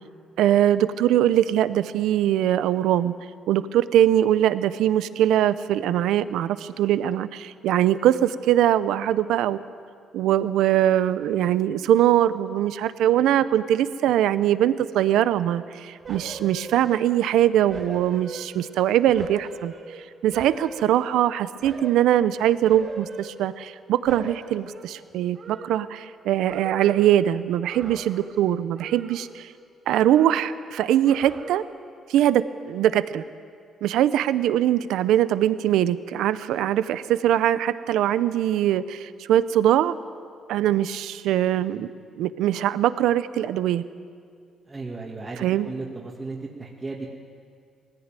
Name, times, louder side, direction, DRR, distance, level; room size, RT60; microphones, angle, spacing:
voice 1, 0.4-3.1 3.5-9.6 10.1-19.7 20.2-29.5 29.9-31.6 32.1-33.2 33.8-39.9 40.5-41.9 42.2-43.8 45.4-45.7, right 11 dB, 85° right, 14 dB, 0.6 m, -22 dB
sound 1, 16.0-17.3 17.7-18.8 19.1-21.2 21.6-22.2 22.7-23.8 24.0-26.2 26.5-27.2 27.6-28.4 28.7-29.6 29.9-30.6 31.0-31.8 32.2-32.3, right 2 dB, 50° right, 4.1 m, -40 dB
voice 2, 44.7-47.1, right 3 dB, 25° right, -3 dB, 2.3 m, -35 dB
19.5 x 15.5 x 9.0 m, 2.2 s
cardioid pair, 90°, 0 cm